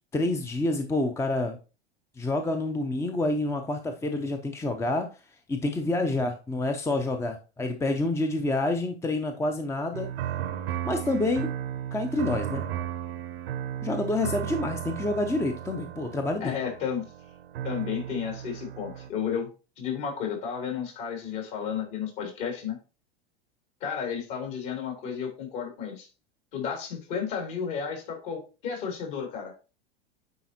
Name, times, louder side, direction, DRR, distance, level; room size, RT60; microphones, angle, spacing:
voice 1, 0.1-1.6 2.2-5.1 5.5-10.1 10.8-11.5 11.9-12.6 13.8-16.5, left 2 dB, 10° left, 6 dB, 0.6 m, -28 dB
sound 1, 9.9-19.1, right 10 dB, 65° right, 0.9 m, -35 dB
voice 2, 16.4-17.0 17.6-19.5 19.8-22.8 23.8-26.1 26.5-29.5, left 7 dB, 55° left, 2 dB, 3.1 m, -32 dB
9.3 x 4.1 x 2.8 m, 0.33 s
figure-of-eight pair, 85°, 32 cm